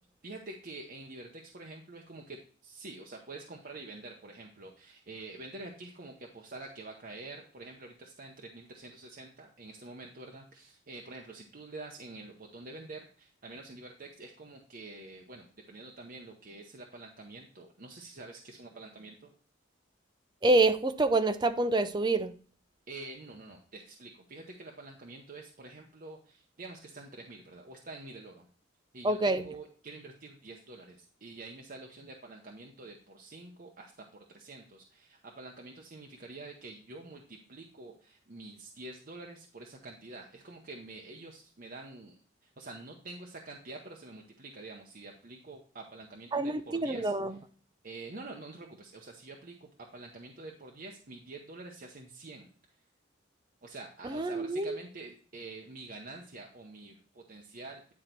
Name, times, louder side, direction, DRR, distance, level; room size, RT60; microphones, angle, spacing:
voice 1, 0.2-19.3 22.9-28.5 28.9-47.1 47.8-52.5 53.6-57.9, right 2 dB, 45° right, 0.8 m, -47 dB
voice 2, 20.4-22.3 29.0-29.4 46.3-47.3 54.0-54.8, right 2 dB, 20° right, 0.5 m, -27 dB
9.7 x 4.0 x 4.4 m
head